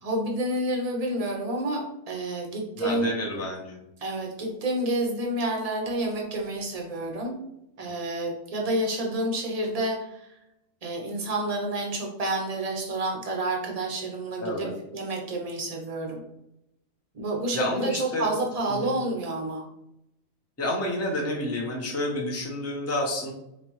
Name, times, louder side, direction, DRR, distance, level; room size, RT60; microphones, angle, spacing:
voice 1, 0.0-3.1 4.0-7.4 7.8-10.4 10.8-16.2 17.1-19.6, right 1 dB, 35° right, 0 dB, 0.6 m, -29 dB
voice 2, 2.8-3.8 7.8-7.9 14.4-14.8 17.5-18.3 18.7-18.9 20.6-23.3, left 1 dB, 15° left, -1 dB, 0.5 m, -29 dB
4.1 x 3.3 x 3.0 m, 0.83 s
omnidirectional pair, 1.7 m